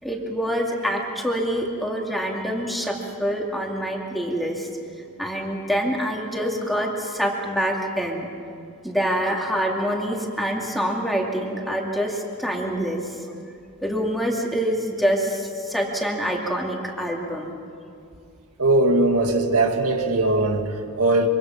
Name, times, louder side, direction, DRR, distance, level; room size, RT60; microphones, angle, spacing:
voice 1, 0.0-4.7 5.2-8.3 8.8-13.2 13.8-17.5, equal, ahead, 2.4 m, -26 dB
voice 2, 18.6-21.3, right 2 dB, 75° right, 1.9 m, -20 dB
25.0 x 25.0 x 5.8 m
head